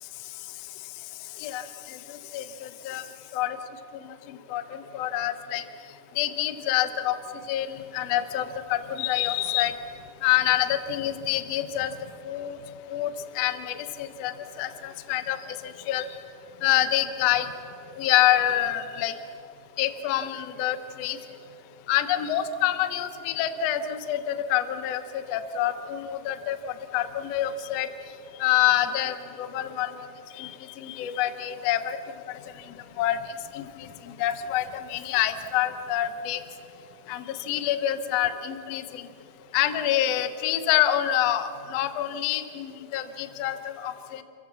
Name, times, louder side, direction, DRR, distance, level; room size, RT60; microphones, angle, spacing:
voice 1, 1.4-3.0 3.3-3.6 3.9-5.6 6.2-7.2 7.5-9.8 10.2-12.0 12.3-12.6 12.9-16.2 16.6-17.5 18.0-19.2 19.8-21.2 21.9-27.9 28.4-30.1 30.3-32.0 32.3-33.2 33.5-36.4 37.1-39.1 39.5-44.2, left 12 dB, 65° left, 10 dB, 1.8 m, -27 dB
29.5 x 15.0 x 7.2 m, 2.6 s
omnidirectional pair, 3.6 m